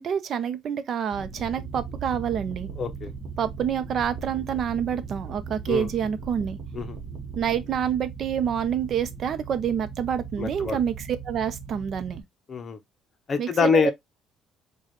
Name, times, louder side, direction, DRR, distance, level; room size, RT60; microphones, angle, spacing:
voice 1, 0.0-2.7 3.4-6.6 7.3-12.2 13.4-13.9, right 8 dB, 50° right, 0.6 m, -27 dB
sound 1, 1.1-12.2, right 5 dB, 35° right, 1.1 m, -38 dB
voice 2, 2.8-3.1 5.7-5.9 6.7-7.0 10.4-10.8 12.5-12.8 13.3-13.9, left 5 dB, 35° left, 0.6 m, -25 dB
4.7 x 2.3 x 3.0 m
cardioid pair, 120°, 0 cm